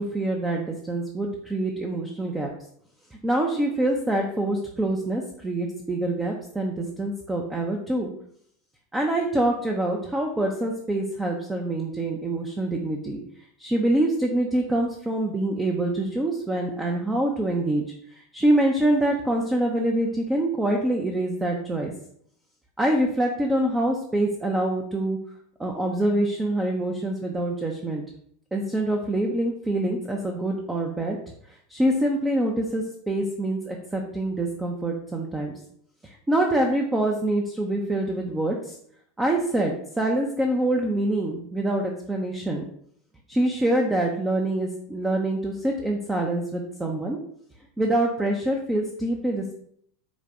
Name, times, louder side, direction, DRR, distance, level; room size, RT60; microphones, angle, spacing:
voice 1, 0.0-2.5 3.2-8.1 8.9-13.2 13.6-17.8 18.1-21.9 22.8-25.2 25.6-28.0 28.5-31.2 31.5-35.5 36.0-38.7 39.2-42.6 43.3-47.2 47.8-49.5, right 1 dB, 10° right, 1 dB, 0.6 m, -25 dB
5.1 x 2.2 x 3.7 m, 0.66 s
hypercardioid pair, 115°, 0 cm